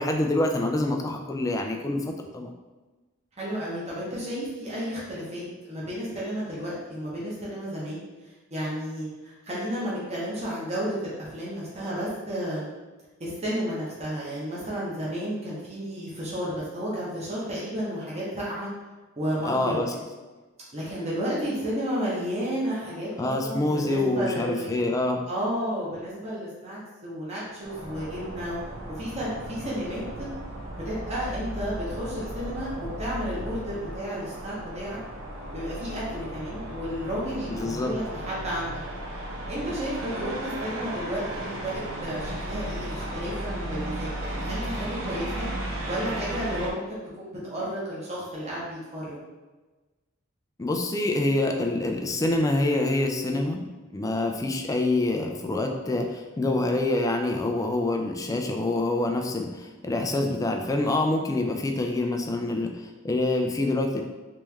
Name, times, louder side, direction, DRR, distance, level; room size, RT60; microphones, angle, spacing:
voice 1, 0.0-2.5 19.4-19.9 23.2-25.2 37.5-37.9 50.6-53.6 53.9-64.0, left 2 dB, 15° left, 3 dB, 0.3 m, -26 dB
voice 2, 3.4-8.0 8.5-12.7 13.2-18.7 19.2-19.8 20.7-24.8 25.3-28.6 28.9-30.3 30.7-35.0 35.5-38.8 39.5-45.5 45.9-49.2, equal, 30° right, -7 dB, 1.0 m, -32 dB
sound 1, 27.6-46.7, right 1 dB, 80° right, 0.7 m, -35 dB
3.2 x 3.1 x 3.4 m, 1.2 s
head